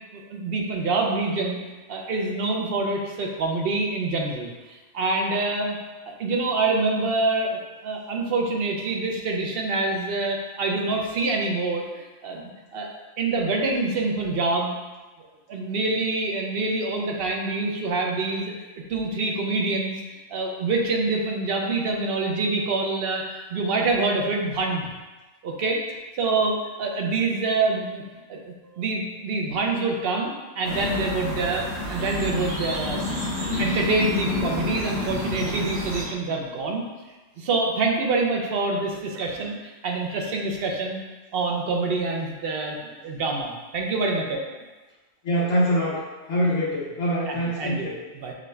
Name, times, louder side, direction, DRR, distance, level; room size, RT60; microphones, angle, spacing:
voice 1, 0.1-1.6 1.9-5.8 6.1-12.4 12.7-12.9 13.2-14.8 15.5-18.5 18.9-20.0 20.3-24.9 25.4-25.8 26.2-28.0 28.3-33.3 33.6-36.8 37.4-41.0 41.3-44.4 47.3-48.3, right 3 dB, 55° right, 1 dB, 0.8 m, -26 dB
sound 1, 30.6-36.0, left 1 dB, 90° right, 1.9 m, -29 dB
voice 2, 45.3-46.0 46.3-48.0, equal, 90° left, -8 dB, 1.2 m, -24 dB
6.0 x 2.3 x 3.2 m, 1.2 s
omnidirectional pair, 1.3 m